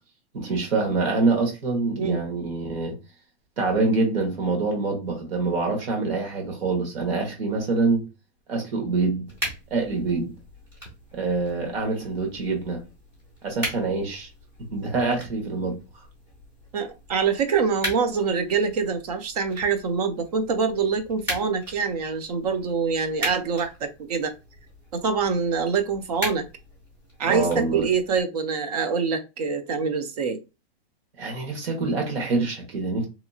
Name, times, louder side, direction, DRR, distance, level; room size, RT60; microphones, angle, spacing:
voice 1, 0.3-3.0 3.6-8.1 8.5-9.3 9.7-10.3 11.1-12.8 13.4-14.3 14.7-15.8 27.2-27.9 31.2-33.0, right 3 dB, 65° right, 1.2 m, -25 dB
sound 1, 9.3-28.2, equal, 5° right, 0.7 m, -39 dB
voice 2, 16.7-24.3 24.9-26.5 27.2-30.4, right 5 dB, 40° right, 0.4 m, -25 dB
2.8 x 2.5 x 2.3 m
supercardioid pair, 170°, 32 cm